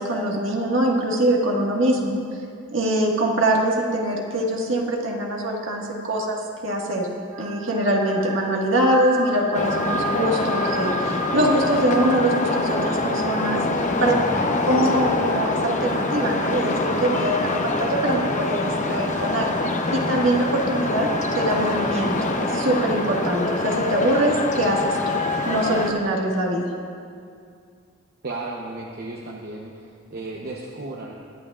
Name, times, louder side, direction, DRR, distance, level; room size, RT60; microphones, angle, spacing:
voice 1, 0.0-2.2 2.7-7.1 7.4-13.6 14.0-14.1 14.7-19.5 19.9-22.1 22.4-25.0 25.4-26.7, right 1 dB, 70° right, -1 dB, 1.7 m, -23 dB
sound 1, 7.3-26.0, right 3 dB, 25° right, 1.9 m, -35 dB
sound 2, 9.5-25.9, left 2 dB, 40° left, 0.7 m, -25 dB
voice 2, 14.0-15.0 28.2-31.1, right 2 dB, 50° right, -2 dB, 0.9 m, -34 dB
21.0 x 11.0 x 2.5 m, 2.3 s
head